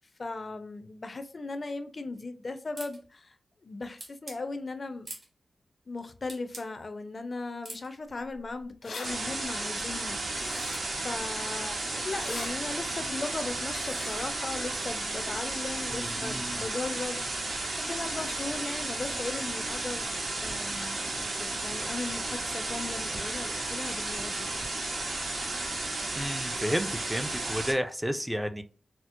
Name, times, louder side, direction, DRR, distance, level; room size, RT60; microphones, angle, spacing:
voice 1, 0.2-3.3 3.6-5.1 5.9-10.6 11.0-24.5, left 3 dB, 45° left, 0.6 m, -38 dB
sound 1, 2.8-3.0 4.0-4.4 5.0-5.3 6.3-6.7 7.6-7.9, right 2 dB, 50° right, 1.6 m, -42 dB
sound 2, 8.3-8.4 8.6-9.1 10.4-11.0 12.1-12.5 13.7-14.3, left 3 dB, 80° left, 1.2 m, -41 dB
sound 3, 9.0-27.7, right 2 dB, 70° right, 1.2 m, -33 dB
voice 2, 15.9-16.6 26.1-28.6, equal, 5° right, 0.5 m, -32 dB
4.3 x 2.0 x 2.5 m
cardioid pair, 70°, 0 cm